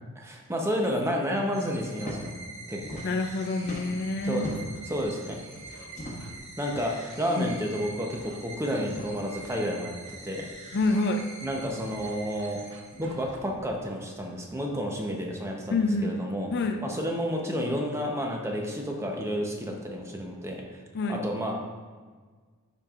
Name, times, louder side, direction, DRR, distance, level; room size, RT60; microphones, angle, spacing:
voice 1, 0.2-2.3 2.7-3.0 4.2-4.4 4.9-5.4 6.6-10.0 10.2-10.5 11.4-12.6 13.0-16.5 16.8-20.6 21.1-21.6, equal, 15° right, 0 dB, 0.8 m, -30 dB
sound 1, 1.5-13.4, right 2 dB, 35° right, 1.7 m, -45 dB
sound 2, 1.9-2.2 2.5-3.3 3.6-4.9 5.9-6.4 7.3-7.5 7.8-7.9 8.8-9.1 10.3-10.4 11.5-11.8 12.9-13.1, equal, 35° left, 1.1 m, -40 dB
voice 2, 3.0-4.6 7.4-7.5 10.7-11.3 15.7-16.2 16.5-16.8 20.9-21.2, left 2 dB, 50° left, 7 dB, 0.4 m, -27 dB
Scratching (performance technique), 3.6-3.7 4.1-4.4 4.9-5.9 6.2-6.4 6.7-7.0 7.4-8.4 8.8-9.0 9.3-9.6 10.1-11.0 11.4-11.6 11.9-13.7, right 3 dB, 55° right, 0.7 m, -50 dB
10.5 x 4.5 x 2.5 m, 1.5 s
head